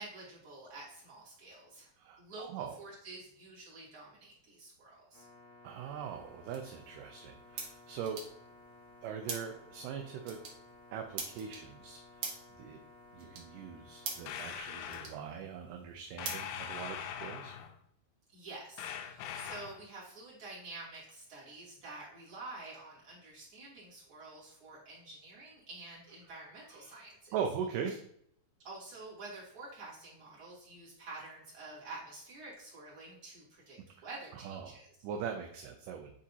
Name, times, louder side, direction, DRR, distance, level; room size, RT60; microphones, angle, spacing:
voice 1, 0.0-1.9 2.2-5.3 18.3-27.3 28.6-34.9, right 2 dB, 35° right, -7 dB, 3.4 m, -49 dB
voice 2, 2.0-2.8 5.6-8.2 9.0-10.4 10.9-12.0 12.6-12.8 13.1-17.5 26.8-26.9 27.3-27.9 34.0-34.1 34.3-34.7 35.0-36.1, right 7 dB, 80° right, 4 dB, 2.1 m, -41 dB
sound 1, 5.1-14.6, left 2 dB, 65° left, 1.0 m, -57 dB
sound 2, 5.7-17.2, right 4 dB, 60° right, 1.4 m, -47 dB
sound 3, 14.3-15.1 16.2-17.8 18.8-19.8, left 8 dB, 80° left, 2.0 m, -42 dB
9.8 x 4.1 x 2.8 m, 0.69 s
omnidirectional pair, 4.2 m